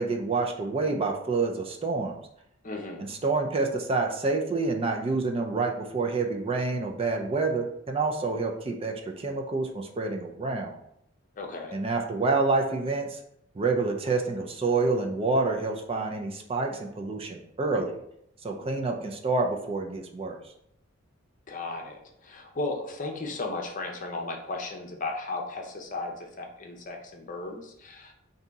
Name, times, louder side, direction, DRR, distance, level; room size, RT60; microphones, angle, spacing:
voice 1, 0.0-2.2 3.1-10.8 11.7-13.2 13.5-18.0 18.4-20.4, right 3 dB, 30° right, 2 dB, 0.4 m, -28 dB
voice 2, 2.6-3.1 11.3-11.7 21.5-28.1, left 3 dB, 40° left, 2 dB, 0.6 m, -35 dB
3.5 x 2.7 x 3.9 m, 0.73 s
head